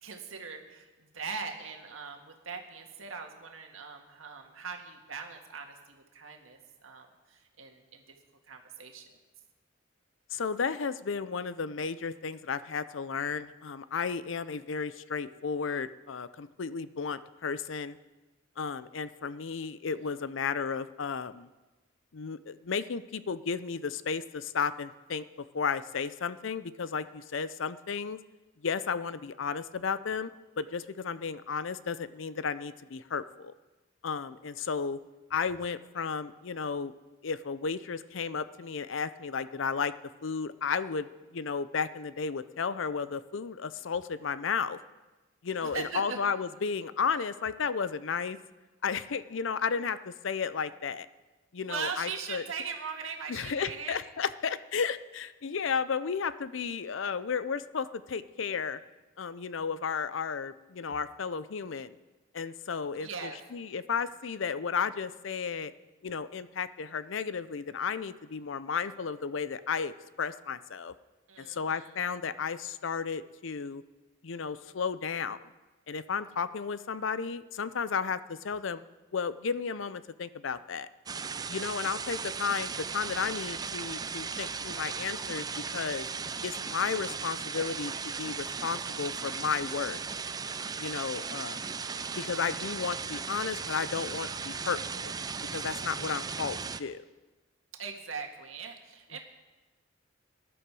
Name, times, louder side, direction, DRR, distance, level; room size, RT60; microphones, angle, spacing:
voice 1, 0.0-8.0 8.5-9.2 19.9-20.1 45.6-46.2 51.6-54.0 62.9-63.4 71.3-71.9 91.8-92.5 97.8-99.2, right 5 dB, 85° right, 3 dB, 1.8 m, -41 dB
voice 2, 10.3-18.0 18.6-21.5 22.1-25.2 25.5-28.2 28.6-30.3 30.6-33.5 34.0-35.0 35.3-36.9 37.2-39.9 40.2-44.8 45.4-48.4 48.8-51.1 51.5-52.4 53.3-58.8 59.2-61.9 62.3-65.7 66.0-69.9 70.2-70.9 71.4-73.8 74.2-75.4 75.9-78.8 79.1-80.9 81.5-85.5 85.7-86.1 86.4-90.0 90.8-91.6 92.2-95.1 95.4-97.0, left 6 dB, 65° left, 15 dB, 0.6 m, -33 dB
sound 1, 81.1-96.8, right 5 dB, 20° right, 0.4 m, -37 dB
19.0 x 11.0 x 4.8 m, 1.2 s
head